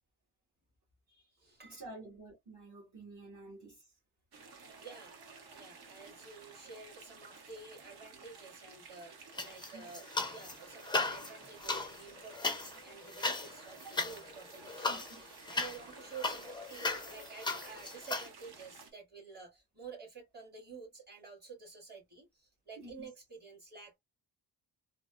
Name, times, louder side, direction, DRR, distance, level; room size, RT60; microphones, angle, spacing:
voice 1, 1.1-1.8 4.8-24.0, right 5 dB, 25° right, 2.0 m, -51 dB
voice 2, 1.6-3.8 9.7-9.9 13.8-14.0 14.8-15.2 22.8-23.1, right 2 dB, 40° right, 1.7 m, -50 dB
sound 1, 4.3-18.9, right 4 dB, 60° right, 0.9 m, -54 dB
sound 2, 9.3-10.5 10.8-18.3, left 3 dB, 10° left, 0.4 m, -37 dB
3.8 x 2.0 x 2.3 m
wide cardioid pair, 160°, 42 cm